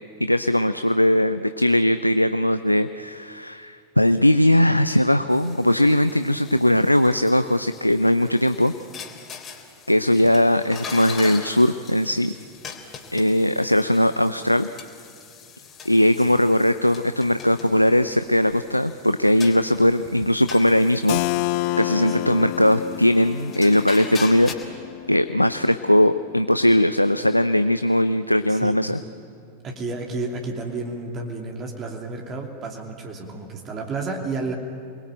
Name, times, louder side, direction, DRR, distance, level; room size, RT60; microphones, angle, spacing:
voice 1, 0.2-8.7 9.9-12.3 13.1-14.7 15.9-21.2 21.8-24.5 25.1-29.0, left 1 dB, 85° left, 12 dB, 0.5 m, -19 dB
sound 1, 5.3-24.5, left 6 dB, 25° left, 3.5 m, -41 dB
Keyboard (musical), 21.1-26.6, left 18 dB, 45° left, 0.6 m, -29 dB
voice 2, 29.6-34.5, right 3 dB, 30° right, 1 dB, 2.9 m, -31 dB
28.5 x 21.0 x 9.0 m, 2.5 s
figure-of-eight pair, 90°, 0 cm